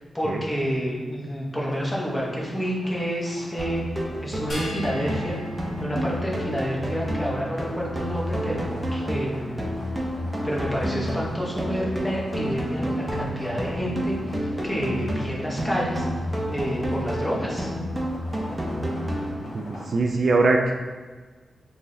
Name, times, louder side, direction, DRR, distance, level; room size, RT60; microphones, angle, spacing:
voice 1, 0.1-3.8 4.2-5.4 5.8-9.7 10.4-16.1 16.5-17.7, equal, 10° left, -4 dB, 0.9 m, -29 dB
sound 1, 1.7-19.9, left 1 dB, 75° left, 1.3 m, -44 dB
sound 2, 3.6-19.6, equal, 15° right, 0.6 m, -30 dB
sound 3, 4.5-7.1, left 1 dB, 40° left, 1.2 m, -39 dB
voice 2, 19.5-20.7, right 3 dB, 50° right, 1 dB, 0.3 m, -22 dB
4.6 x 3.1 x 2.7 m, 1.4 s
wide cardioid pair, 115°, 0 cm